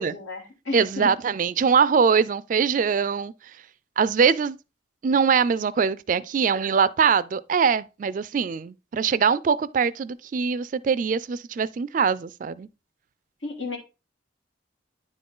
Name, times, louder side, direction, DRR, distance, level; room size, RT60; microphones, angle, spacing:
voice 1, 0.0-1.1 13.4-13.8, left 3 dB, 85° left, 2.6 m, -33 dB
voice 2, 0.7-3.3 4.0-4.6 5.0-12.7, right 6 dB, 45° right, 0.3 m, -22 dB
9.9 x 3.9 x 3.7 m
head